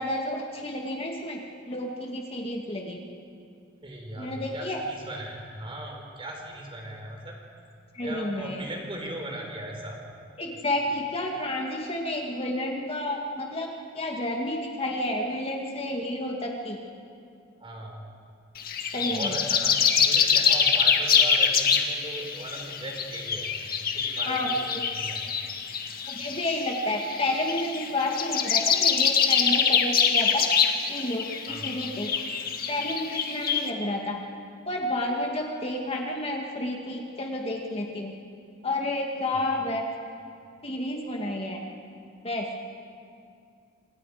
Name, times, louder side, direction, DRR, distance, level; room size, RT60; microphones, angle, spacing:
voice 1, 0.0-1.4 1.7-3.0 4.2-4.8 7.9-8.6 10.4-16.8 18.9-19.3 24.3-24.5 26.1-30.5 30.9-32.1 32.7-34.2 34.7-38.1 38.6-39.8 40.6-41.6 42.2-42.5, left 1 dB, 30° left, 0 dB, 2.1 m, -30 dB
voice 2, 3.8-7.4 8.0-10.0 17.6-18.2 18.9-23.5 23.8-25.3 31.5-31.8 39.3-39.4, right 1 dB, 30° right, 1 dB, 4.5 m, -38 dB
sound 1, 18.6-33.7, left 7 dB, 50° left, 1.8 m, -25 dB
28.0 x 27.0 x 5.1 m, 2.4 s
head